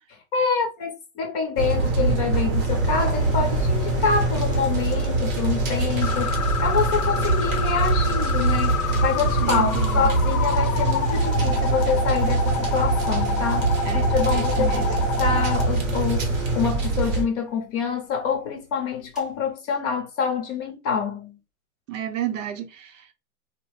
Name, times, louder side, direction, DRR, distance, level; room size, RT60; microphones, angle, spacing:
voice 1, 0.3-21.3, left 6 dB, 30° left, 0.7 m, -26 dB
sound 1, 1.6-17.2, right 3 dB, 30° right, 0.7 m, -23 dB
sound 2, 2.7-17.3 18.6-18.7 18.9-19.3, equal, ahead, 0.7 m, -36 dB
sound 3, 6.0-15.7, left 5 dB, 85° left, 0.6 m, -29 dB
voice 2, 9.4-10.1 13.8-15.0 21.9-23.1, right 10 dB, 60° right, 0.7 m, -32 dB
2.8 x 2.0 x 3.0 m
hypercardioid pair, 150°, 43 cm